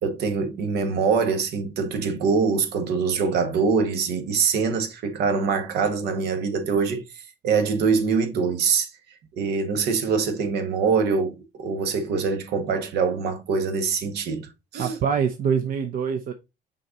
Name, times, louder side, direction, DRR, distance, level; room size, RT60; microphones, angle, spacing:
voice 1, 0.0-8.9 9.4-15.0, right 5 dB, 75° right, 1.6 m, -24 dB
voice 2, 14.8-16.3, right 7 dB, 60° right, 0.9 m, -24 dB
6.4 x 4.3 x 3.9 m
cardioid pair, 110°, 17 cm